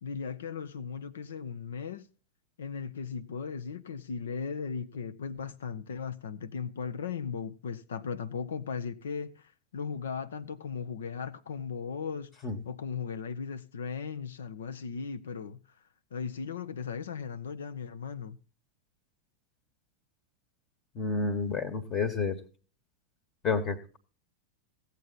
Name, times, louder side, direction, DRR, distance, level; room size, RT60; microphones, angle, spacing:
voice 1, 0.0-2.0 2.6-9.3 9.7-12.3 12.6-15.6 16.1-18.4, left 6 dB, 65° left, 0.8 m, -37 dB
voice 2, 20.9-22.4 23.4-24.0, left 4 dB, 30° left, 1.5 m, -30 dB
16.0 x 8.3 x 4.0 m
figure-of-eight pair, 90°, 0 cm